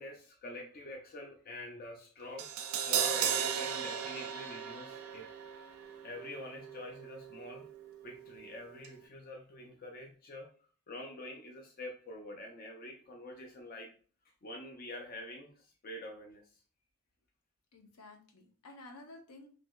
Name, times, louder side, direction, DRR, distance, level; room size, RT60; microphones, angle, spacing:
voice 1, 0.0-5.3 6.0-7.7 8.0-10.5 10.9-13.9 14.2-16.6, left 1 dB, 40° left, 1 dB, 0.4 m, -46 dB
Crash cymbal, 2.4-8.5 8.8-8.9, right 8 dB, 65° right, 0.4 m, -37 dB
voice 2, 17.7-19.5, left 2 dB, 80° left, 3 dB, 0.7 m, -52 dB
3.2 x 2.7 x 2.2 m, 0.41 s
head